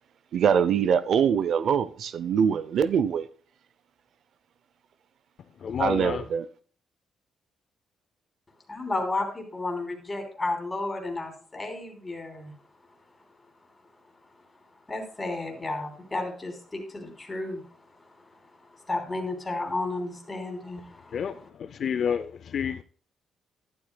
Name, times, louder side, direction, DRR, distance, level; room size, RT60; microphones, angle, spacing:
voice 1, 0.3-3.3 5.8-6.5, right 7 dB, 65° right, 0.5 m, -23 dB
voice 2, 5.6-6.2 21.1-21.3 21.8-22.8, left 7 dB, 60° left, 0.4 m, -29 dB
voice 3, 8.7-12.5 14.9-17.6 18.9-21.5, left 2 dB, 20° left, 3.1 m, -32 dB
11.5 x 11.5 x 2.2 m
cardioid pair, 90°, 0 cm